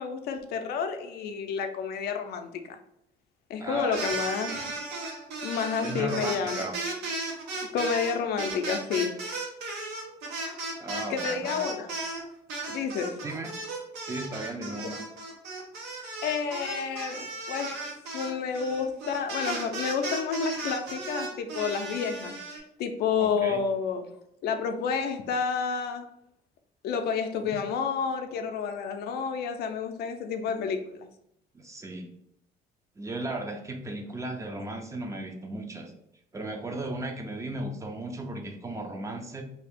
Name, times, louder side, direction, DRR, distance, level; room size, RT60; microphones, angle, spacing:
voice 1, 0.0-2.8 3.5-4.6 5.4-6.7 7.7-9.2 11.1-11.9 12.7-13.2 14.7-14.8 16.2-24.1 24.4-26.1 26.8-31.1, left 6 dB, 70° left, 0.4 m, -30 dB
voice 2, 3.6-4.0 5.8-6.7 10.8-11.6 13.2-13.5 14.0-15.0 23.2-23.6 31.5-32.1 33.0-35.9 36.3-39.4, right 2 dB, 20° right, 0.4 m, -35 dB
sound 1, 3.8-12.2 12.5-22.6, right 2 dB, 80° right, 0.9 m, -35 dB
2.7 x 2.4 x 3.4 m
cardioid pair, 110°, 17 cm